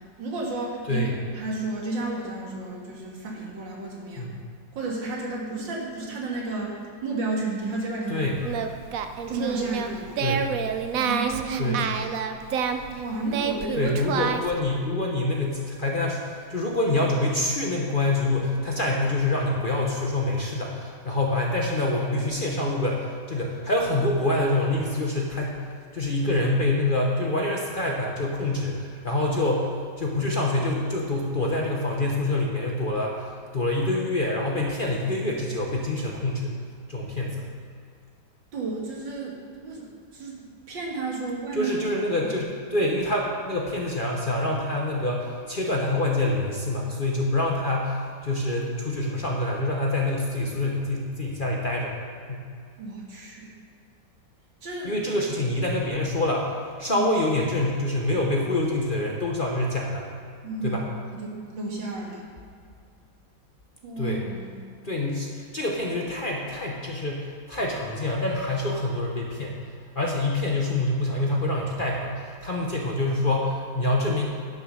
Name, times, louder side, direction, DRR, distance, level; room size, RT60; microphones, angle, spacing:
voice 1, 0.2-1.0 1.3-4.3 4.8-8.2 9.3-10.2 11.0-11.9 12.9-13.9 38.5-39.3 39.6-39.9 40.1-41.7 52.8-53.5 54.6-55.0 56.9-57.1 60.4-60.8 61.2-62.3 63.8-64.6, right 3 dB, 85° right, -2 dB, 2.5 m, -32 dB
voice 2, 8.1-8.4 10.2-10.5 11.6-11.8 13.7-25.6 25.9-29.7 30.0-36.6 36.9-37.5 41.5-52.0 52.3-52.5 54.8-60.0 60.6-60.9 64.0-64.2 64.8-69.6 69.9-74.2, left 2 dB, 35° left, -1 dB, 0.9 m, -26 dB
Singing, 8.4-14.6, right 7 dB, 65° right, 0.8 m, -29 dB
10.5 x 6.3 x 6.3 m, 2.2 s
omnidirectional pair, 2.0 m